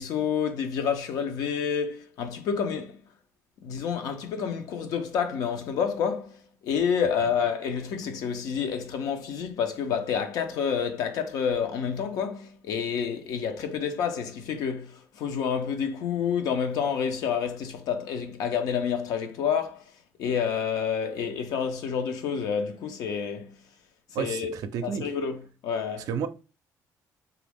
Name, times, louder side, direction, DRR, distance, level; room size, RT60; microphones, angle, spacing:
voice 1, 0.0-3.0 3.6-19.8 20.2-23.5 24.1-24.5 24.8-26.1, left 7 dB, 80° left, 0.5 m, -29 dB
voice 2, 24.1-25.1 26.1-26.3, right 7 dB, 75° right, 0.4 m, -31 dB
3.0 x 2.3 x 3.4 m
cardioid pair, 90°, 6 cm